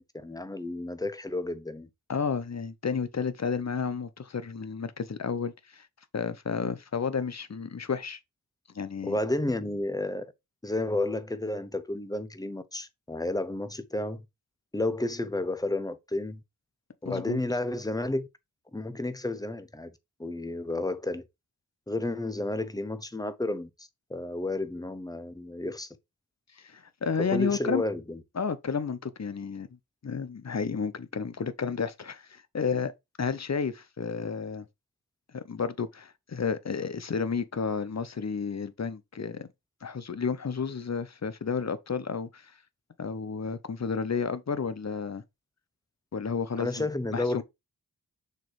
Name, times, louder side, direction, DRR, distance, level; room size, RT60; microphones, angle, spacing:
voice 1, 0.0-1.9 9.0-10.3 10.6-14.2 14.7-16.4 17.0-18.3 18.7-19.9 20.2-21.3 21.9-25.9 27.3-28.2 46.6-47.4, left 2 dB, 10° left, 0.9 m, -31 dB
voice 2, 2.1-5.9 6.1-8.2 8.7-9.2 17.0-17.4 26.6-27.8 28.4-29.7 30.0-32.9 33.2-34.6 35.3-39.5 39.8-42.5 43.0-45.2 46.1-46.9 47.1-47.4, left 5 dB, 45° left, 0.8 m, -31 dB
6.7 x 3.1 x 4.7 m
cardioid pair, 45°, 36 cm